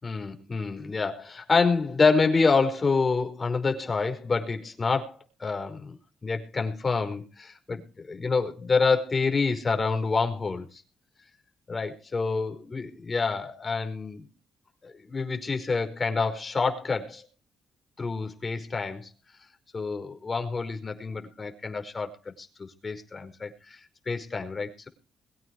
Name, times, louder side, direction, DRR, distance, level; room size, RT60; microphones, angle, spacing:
voice 1, 0.0-5.9 6.2-7.8 8.1-10.6 11.7-14.2 14.8-17.2 18.0-19.1 19.7-22.5 22.8-23.8 24.0-24.9, left 4 dB, 30° left, 6 dB, 5.1 m, -27 dB
22.5 x 9.2 x 4.8 m, 0.34 s
cardioid pair, 90°, 0 cm